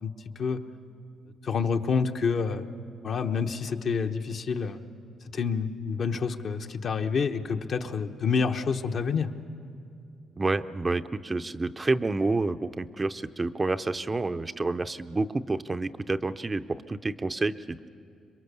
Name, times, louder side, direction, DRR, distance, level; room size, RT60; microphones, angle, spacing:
voice 1, 0.0-0.6 1.4-2.7 3.0-4.8 5.3-9.3, left 5 dB, 55° left, 5 dB, 1.0 m, -28 dB
voice 2, 10.4-17.9, right 3 dB, 25° right, 9 dB, 0.6 m, -29 dB
26.5 x 22.5 x 6.9 m, 2.5 s
cardioid pair, 90°, 0 cm